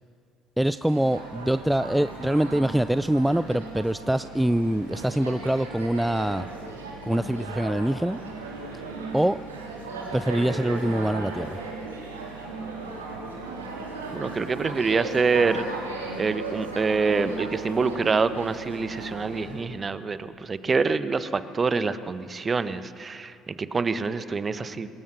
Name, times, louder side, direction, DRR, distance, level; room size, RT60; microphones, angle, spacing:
voice 1, 0.6-6.5 7.1-8.2 9.1-9.4 10.1-11.6, right 1 dB, 5° right, 14 dB, 0.4 m, -24 dB
sound 1, 0.9-19.6, right 3 dB, 80° right, 3.6 m, -36 dB
voice 2, 14.1-15.6 16.2-24.9, right 4 dB, 30° right, 13 dB, 1.2 m, -26 dB
26.5 x 20.0 x 6.1 m, 2.5 s
figure-of-eight pair, 55°, 0 cm